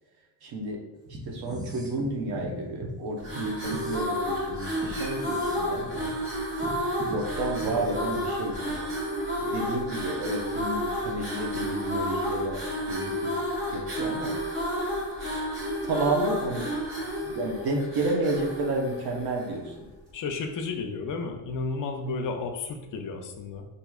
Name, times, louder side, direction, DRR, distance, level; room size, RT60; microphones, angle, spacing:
voice 1, 0.4-0.8 1.1-6.1 6.5-6.7 7.0-8.8 9.4-12.6 12.9-13.4 13.7-14.3 15.8-16.7 17.2-19.9, right 2 dB, 80° right, 0 dB, 0.9 m, -31 dB
sound 1, 1.1-2.9 3.3-8.4, right 1 dB, 10° right, 0.4 m, -41 dB
sound 2, 3.2-19.6, equal, 35° right, 1.2 m, -31 dB
voice 2, 20.1-23.7, left 4 dB, 55° left, 4 dB, 0.6 m, -32 dB
4.6 x 2.7 x 2.3 m, 1.0 s
cardioid pair, 120°, 38 cm